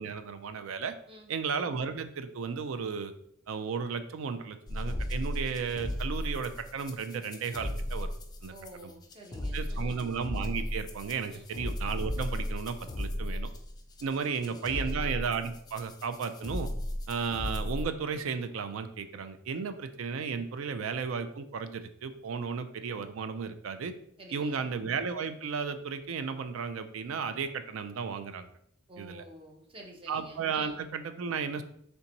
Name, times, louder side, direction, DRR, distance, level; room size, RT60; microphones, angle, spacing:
voice 1, 0.0-0.9 1.3-3.1 3.5-8.1 8.4-8.5 9.5-13.5 14.0-16.7 17.1-23.9 24.3-28.5 29.0-29.2 30.1-31.6, right 5 dB, 75° right, 10 dB, 0.4 m, -34 dB
sound 1, 4.7-17.9, left 1 dB, 20° left, 0.4 m, -35 dB
voice 2, 8.5-10.1 11.3-11.5 14.3-15.0 24.2-24.7 28.9-30.8, right 1 dB, 25° right, 1 dB, 0.6 m, -50 dB
3.4 x 2.9 x 3.9 m, 0.70 s
head